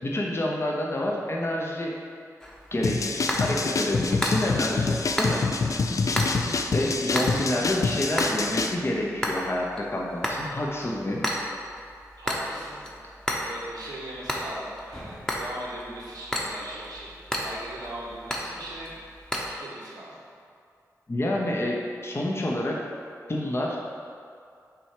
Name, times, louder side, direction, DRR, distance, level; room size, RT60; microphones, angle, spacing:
voice 1, 0.0-1.9 2.7-5.4 6.7-11.2 21.1-22.8 23.3-23.8, left 1 dB, 40° left, -2 dB, 0.9 m, -28 dB
sound 1, 2.4-19.5, equal, 10° left, 1.0 m, -33 dB
sound 2, 2.8-8.8, left 4 dB, 55° left, 0.4 m, -27 dB
voice 2, 6.1-6.7 12.2-12.9 13.4-17.1 17.4-18.9 19.6-20.2, right 1 dB, 85° right, -5 dB, 1.2 m, -40 dB
6.0 x 3.3 x 5.0 m, 2.3 s
cardioid pair, 40°, 7 cm